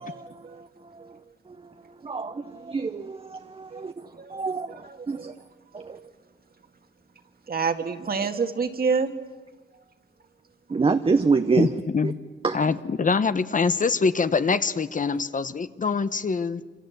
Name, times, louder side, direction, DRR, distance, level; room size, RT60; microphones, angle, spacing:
voice 1, 0.1-0.6 1.0-1.1 3.7-3.8 4.2-5.4 5.8-6.1 7.5-9.1, right 5 dB, 50° right, 6 dB, 1.9 m, -29 dB
voice 2, 2.0-3.9 4.3-5.3 5.7-6.0 10.7-11.7 12.0-12.1 12.4-12.6, right 4 dB, 30° right, 8 dB, 0.8 m, -26 dB
voice 3, 11.6-12.2 12.5-16.6, left 5 dB, 45° left, 13 dB, 0.9 m, -24 dB
27.5 x 26.5 x 8.0 m, 1.3 s
wide cardioid pair, 165°, 20 cm